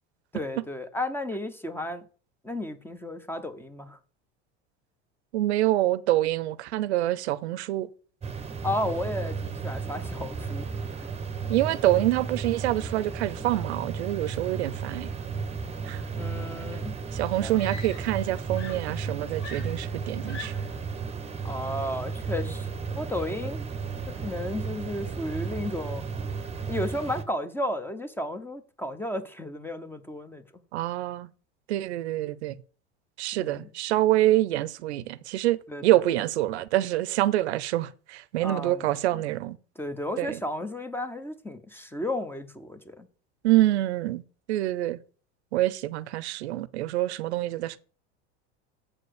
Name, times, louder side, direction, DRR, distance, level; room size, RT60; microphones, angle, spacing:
voice 1, 0.3-2.0 2.4-4.0 8.6-10.7 11.0-11.1 16.1-16.9 17.4-17.5 21.4-22.7 22.9-23.6 24.1-26.1 26.7-30.4 33.3-33.6 35.7-36.0 38.4-38.8 39.1-39.2 39.8-43.1, left 1 dB, 5° left, 0.9 m, -33 dB
voice 2, 5.3-7.9 11.5-15.1 15.8-16.0 17.1-20.5 30.7-31.3 31.7-32.6 33.2-39.6 40.2-40.4 43.4-44.2 44.5-45.0 45.5-47.8, right 15 dB, 90° right, 0.7 m, -26 dB
sound 1, 8.2-27.2, right 5 dB, 20° right, 1.0 m, -34 dB
Screaming, 17.5-18.3 18.5-20.8 21.8-22.1, left 3 dB, 90° left, 3.5 m, -44 dB
7.7 x 4.4 x 6.5 m
supercardioid pair, 100°, 32 cm